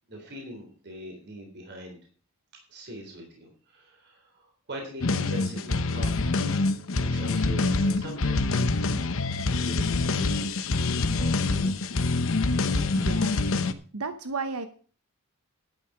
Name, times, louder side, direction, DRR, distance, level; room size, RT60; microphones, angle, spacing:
voice 1, 0.1-2.0 2.7-6.4 6.9-8.6 9.6-11.8, equal, 50° right, 1 dB, 3.6 m, -42 dB
sound 1, 5.0-13.7, left 3 dB, 65° left, 0.9 m, -25 dB
voice 2, 13.0-13.4 13.9-14.7, right 4 dB, 85° right, 9 dB, 0.9 m, -33 dB
11.5 x 9.1 x 5.0 m, 0.41 s
head